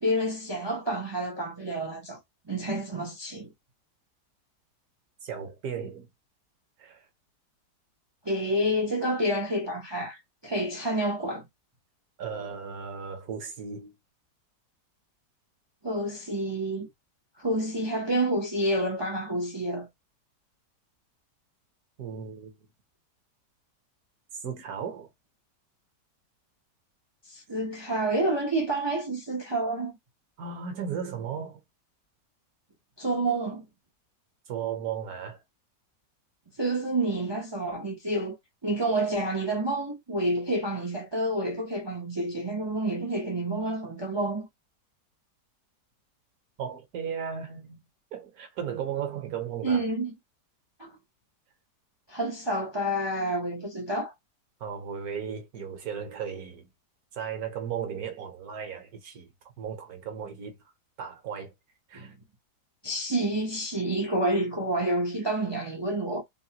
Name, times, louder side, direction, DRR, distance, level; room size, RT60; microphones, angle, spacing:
voice 1, 0.0-2.2 2.5-3.5 8.2-11.4 15.8-16.9 17.4-19.9 27.3-29.9 33.0-33.6 36.6-38.4 38.6-44.5 49.6-50.1 50.8-50.9 52.1-54.1 61.9-62.1 62.8-66.2, right 1 dB, 40° right, 0.3 m, -29 dB
voice 2, 5.2-6.1 6.8-7.0 12.2-13.9 22.0-22.6 24.4-25.1 30.4-31.6 34.5-35.4 46.6-47.8 48.1-49.8 54.6-56.7 57.1-59.3 59.6-60.6 61.0-61.5 61.9-62.1, right 7 dB, 65° right, 1.3 m, -35 dB
3.9 x 2.2 x 2.7 m
omnidirectional pair, 1.8 m